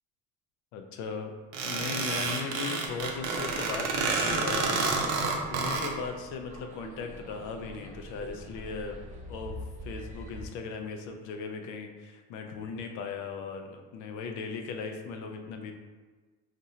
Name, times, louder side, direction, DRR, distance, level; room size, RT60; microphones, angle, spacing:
voice 1, 0.7-1.3 1.6-5.0 5.3-9.0 9.3-15.7, left 5 dB, 70° left, 4 dB, 0.5 m, -38 dB
sound 1, 1.5-5.9, right 4 dB, 65° right, 0.6 m, -29 dB
sound 2, 2.8-10.5, right 1 dB, 25° right, 0.7 m, -45 dB
2.7 x 2.5 x 4.2 m, 1.3 s
cardioid pair, 120°, 30 cm